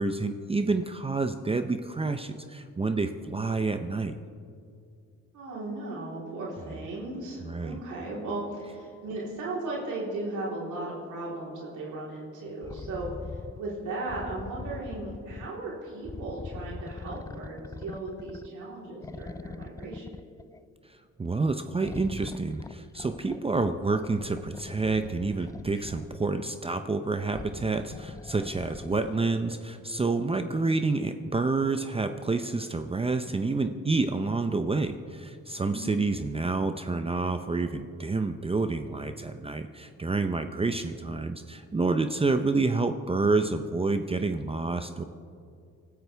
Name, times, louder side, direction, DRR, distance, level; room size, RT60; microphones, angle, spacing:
voice 1, 0.0-4.2 7.5-7.8 21.2-45.0, right 3 dB, 20° right, 8 dB, 0.7 m, -28 dB
voice 2, 5.3-13.1 13.6-20.1 35.7-36.0, right 2 dB, 80° right, -5 dB, 3.8 m, -36 dB
sound 1, 12.6-13.6 14.1-15.6 16.0-18.6 19.0-20.6 21.8-26.3 27.2-29.2 30.1-30.2, left 3 dB, 10° left, 0.3 m, -42 dB
24.5 x 13.5 x 3.4 m, 2.4 s
cardioid pair, 90°, 30 cm